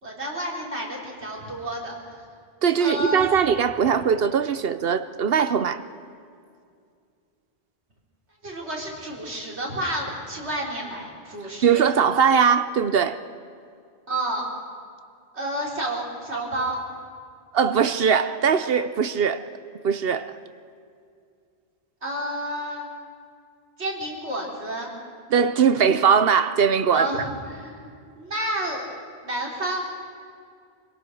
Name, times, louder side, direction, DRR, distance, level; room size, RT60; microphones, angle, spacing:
voice 1, 0.0-2.0 2.8-3.3 8.4-11.9 14.1-14.5 15.3-16.8 22.0-22.9 23.8-24.9 26.9-27.9 28.2-28.9 29.2-30.0, right 1 dB, 85° right, 4.0 m, -30 dB
voice 2, 2.6-5.8 11.6-13.2 17.5-19.5 19.8-20.4 25.3-27.1, right 7 dB, 65° right, 0.9 m, -20 dB
26.0 x 17.5 x 6.4 m
omnidirectional pair, 1.1 m